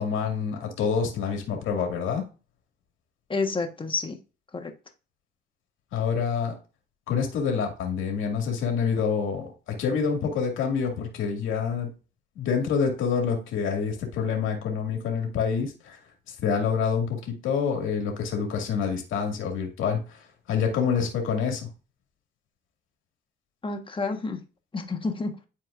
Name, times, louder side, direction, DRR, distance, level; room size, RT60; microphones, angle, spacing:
voice 1, 0.0-2.2 5.9-6.6 7.1-11.9 12.4-16.0 16.3-21.7, left 6 dB, 85° left, 2.1 m, -27 dB
voice 2, 3.3-4.2 4.5-4.7 23.6-24.4 24.7-25.3, left 3 dB, 25° left, 1.2 m, -29 dB
11.0 x 4.5 x 2.5 m
cardioid pair, 90°, 20 cm